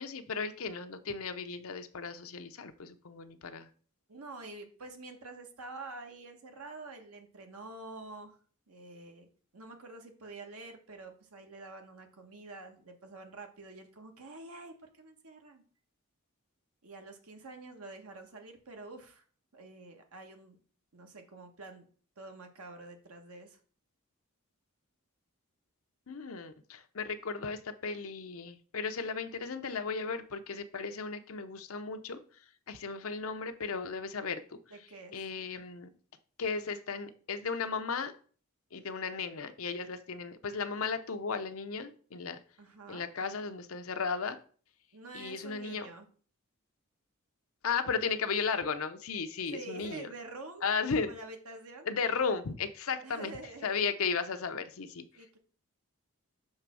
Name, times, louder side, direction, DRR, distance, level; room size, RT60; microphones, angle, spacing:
voice 1, 0.0-3.7 26.1-32.2 32.7-34.4 35.1-35.9 36.4-38.1 38.7-42.4 42.9-44.4 45.1-45.9 47.6-50.1 50.6-51.1 51.8-53.3 53.6-55.0, left 5 dB, 70° left, 8 dB, 0.7 m, -35 dB
voice 2, 4.1-8.4 8.7-9.3 9.5-15.6 16.8-19.2 19.5-20.6 20.9-21.9 22.2-23.6 34.7-35.2 42.6-43.0 44.9-46.0 49.5-50.6 51.0-51.9 53.0-53.8 55.1-55.4, right 2 dB, 80° right, 4 dB, 1.3 m, -47 dB
6.5 x 3.4 x 6.1 m, 0.42 s
head